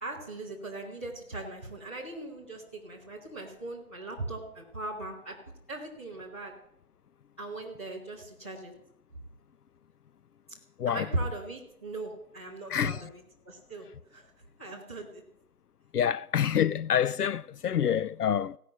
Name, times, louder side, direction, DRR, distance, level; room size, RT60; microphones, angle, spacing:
voice 1, 0.0-5.4 5.7-6.5 7.4-8.7 10.9-13.0 13.4-14.3 14.6-15.2, right 2 dB, 10° left, 1.7 m, -39 dB
voice 2, 12.7-13.1 15.9-18.6, left 9 dB, 75° left, 0.5 m, -27 dB
16.5 x 6.5 x 9.8 m
figure-of-eight pair, 180°, 46 cm